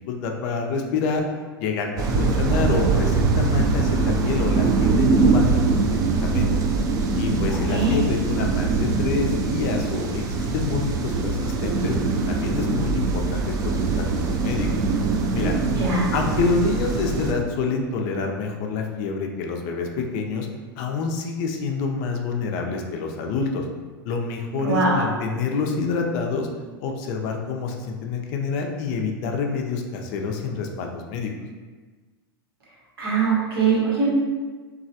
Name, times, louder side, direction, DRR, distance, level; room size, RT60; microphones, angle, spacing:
voice 1, 0.1-1.2 1.6-5.4 5.7-6.7 7.2-12.0 12.3-14.7 15.3-15.5 16.1-20.5 20.8-23.6 24.0-26.5 26.8-31.3, left 4 dB, 45° left, 2 dB, 0.4 m, -27 dB
sound 1, 2.0-17.3, right 3 dB, 30° right, 0.3 m, -22 dB
voice 2, 7.5-8.0 15.7-16.1 24.6-25.0 33.0-34.1, right 4 dB, 75° right, -6 dB, 1.1 m, -22 dB
3.0 x 2.3 x 2.7 m, 1.4 s
hypercardioid pair, 100°, 13 cm